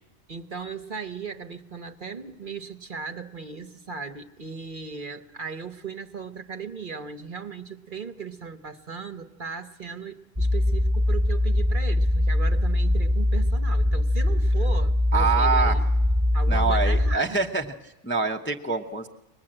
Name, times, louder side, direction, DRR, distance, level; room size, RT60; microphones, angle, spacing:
voice 1, 0.3-15.8 16.3-17.4, right 5 dB, 45° right, 8 dB, 1.1 m, -37 dB
sound 1, 10.4-17.2, left 1 dB, 15° right, 1.1 m, -22 dB
voice 2, 15.1-15.8 16.5-19.1, right 4 dB, 10° left, 3 dB, 0.7 m, -25 dB
24.0 x 20.0 x 8.8 m, 1.0 s
omnidirectional pair, 1.3 m